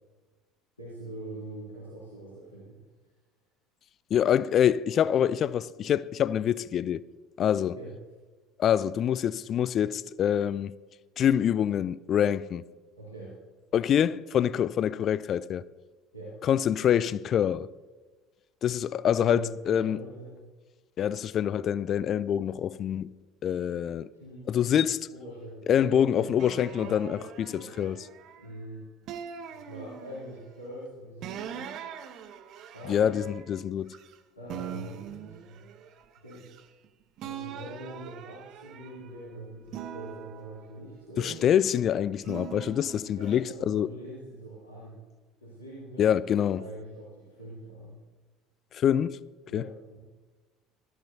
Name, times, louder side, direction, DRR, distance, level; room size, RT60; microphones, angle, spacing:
voice 1, 0.8-2.8 7.6-7.9 13.0-13.3 16.1-16.4 19.0-20.4 24.1-24.5 25.1-26.3 26.7-27.2 27.6-28.0 28.4-28.8 29.5-31.7 32.7-33.2 34.4-35.6 36.2-36.4 37.2-41.3 43.1-45.0 45.4-48.0 49.5-50.0, right 1 dB, 85° left, 2.9 m, -43 dB
voice 2, 4.1-7.0 7.4-7.8 8.6-10.8 11.2-12.6 13.7-15.6 16.4-17.7 18.6-20.0 21.0-23.2 23.4-24.1 24.5-25.0 25.7-27.2 27.5-28.0 32.9-34.0 41.2-43.9 46.0-46.6 48.7-49.2 49.5-49.7, left 9 dB, 40° left, 0.3 m, -25 dB
sound 1, 26.4-28.5 29.1-30.4 31.2-34.2 34.5-36.9 37.2-39.2 39.7-41.7 42.2-43.4, right 9 dB, 50° right, 0.8 m, -43 dB
17.0 x 13.0 x 2.7 m
figure-of-eight pair, 65°, 0 cm